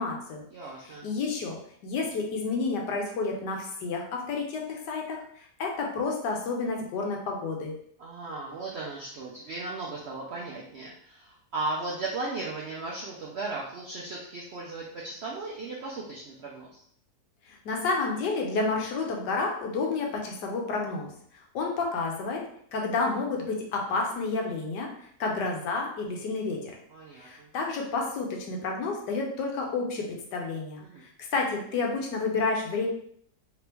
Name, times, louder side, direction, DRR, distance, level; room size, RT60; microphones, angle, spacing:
voice 1, 0.0-0.4 0.8-7.7 17.5-21.1 21.5-22.4 22.7-26.7 27.2-30.8 31.3-32.9, left 3 dB, 85° left, 0 dB, 1.4 m, -30 dB
voice 2, 0.5-1.1 8.0-16.8 26.9-27.5 30.8-31.0, right 3 dB, 75° right, -3 dB, 0.6 m, -36 dB
3.4 x 2.9 x 3.4 m, 0.66 s
omnidirectional pair, 1.8 m